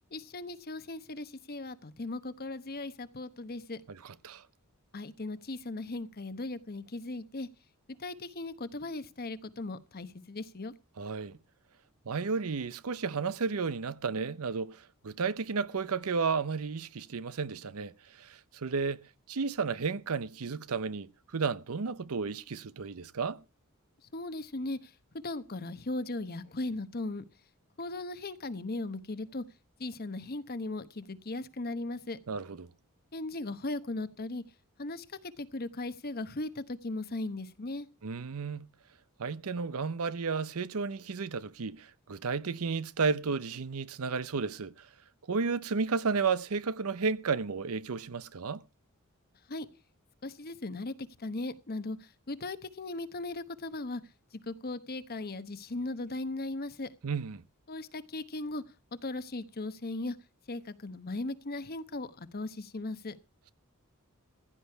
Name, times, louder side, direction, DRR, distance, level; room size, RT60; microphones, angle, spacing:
voice 1, 0.1-3.8 4.9-7.5 8.0-10.7 24.1-24.9 25.2-27.2 27.8-29.4 29.8-32.2 33.1-34.4 34.8-35.0 35.4-37.9 49.5-49.7 50.2-54.0 54.5-56.9 57.7-58.6 59.0-60.2 60.5-63.2, left 2 dB, 45° left, 1.0 m, -37 dB
voice 2, 3.9-4.4 11.0-11.4 12.1-23.4 32.3-32.7 38.0-38.7 39.2-44.9 45.3-48.6 57.0-57.4, right 5 dB, 75° right, 0.7 m, -33 dB
15.5 x 10.0 x 4.5 m
head